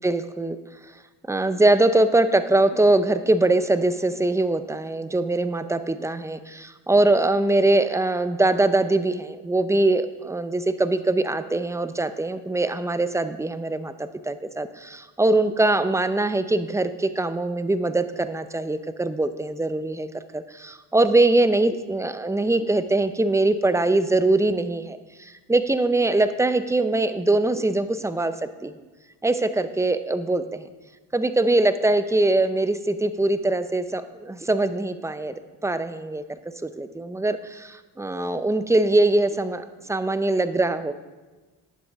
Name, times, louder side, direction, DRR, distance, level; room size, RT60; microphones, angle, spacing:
voice 1, 0.0-0.6 1.3-28.3 28.6-28.7 29.2-30.7 31.1-35.3 35.6-36.2 36.6-40.9, right 2 dB, 5° right, 12 dB, 0.5 m, -22 dB
10.5 x 7.1 x 3.5 m, 1.2 s
supercardioid pair, 45°, 44 cm